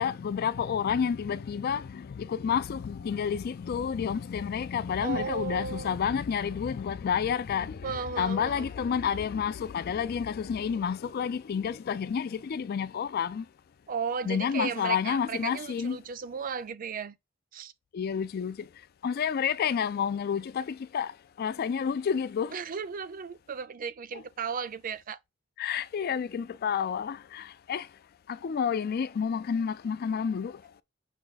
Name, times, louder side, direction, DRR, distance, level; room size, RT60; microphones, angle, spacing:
voice 1, 0.0-13.5 14.2-16.0 17.9-18.7 19.0-22.6 25.6-27.9 28.3-30.6, left 7 dB, 50° left, 0.3 m, -30 dB
voice 2, 5.0-6.0 7.8-8.7 13.9-17.2 17.5-17.7 22.5-25.2, right 6 dB, 45° right, 0.4 m, -35 dB
5.8 x 2.3 x 3.9 m
head